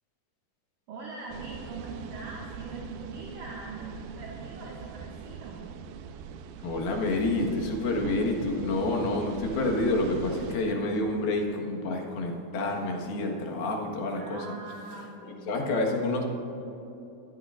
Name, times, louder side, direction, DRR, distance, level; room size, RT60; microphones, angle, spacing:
voice 1, 0.9-5.7 10.7-11.0 14.1-15.7, right 3 dB, 60° right, -4 dB, 3.0 m, -42 dB
sound 1, 1.3-10.6, right 7 dB, 85° right, 2.5 m, -42 dB
voice 2, 6.6-14.5 15.5-16.2, left 2 dB, 75° left, 1 dB, 3.4 m, -28 dB
24.0 x 15.0 x 2.5 m, 3.0 s
omnidirectional pair, 4.4 m